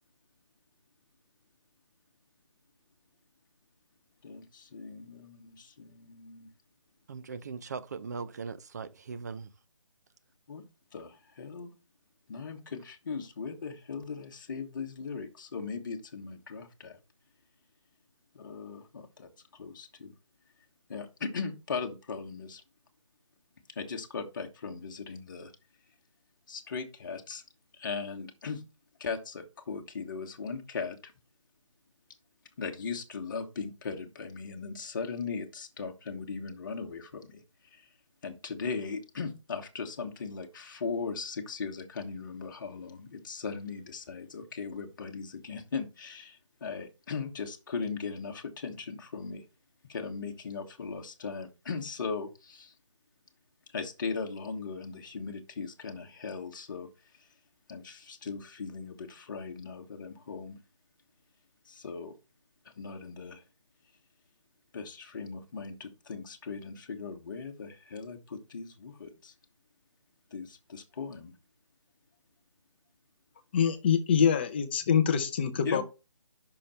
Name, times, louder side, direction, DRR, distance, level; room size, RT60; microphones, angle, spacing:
voice 1, 4.2-6.5 10.5-10.6 10.9-11.7 12.3-17.0 18.3-20.1 20.9-22.6 23.7-25.5 26.5-27.4 27.7-28.6 29.0-31.1 32.6-37.4 37.7-37.9 38.2-49.4 49.9-52.7 53.7-56.9 57.1-57.3 57.7-60.6 61.7-62.1 62.7-63.4 64.7-69.3 70.3-71.3 75.6-75.8, left 5 dB, 40° left, 1.3 m, -38 dB
voice 2, 7.1-9.5, right 5 dB, 35° right, 0.5 m, -39 dB
voice 3, 73.5-75.8, left 7 dB, 20° left, 0.6 m, -25 dB
5.9 x 4.9 x 5.6 m
figure-of-eight pair, 165°, 16 cm